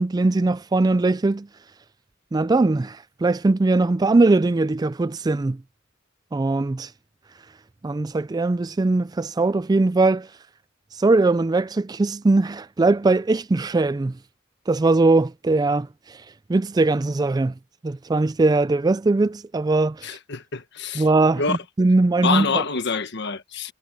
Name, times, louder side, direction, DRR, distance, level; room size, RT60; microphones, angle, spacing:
voice 1, 0.0-1.5 2.3-5.6 6.3-6.9 7.8-10.3 11.0-14.1 14.7-15.9 16.5-17.5 17.8-20.2 20.9-22.6, right 2 dB, 20° right, 0.3 m, -20 dB
voice 2, 20.0-21.0 21.4-21.6 22.2-23.7, left 4 dB, 60° left, 1.4 m, -26 dB
head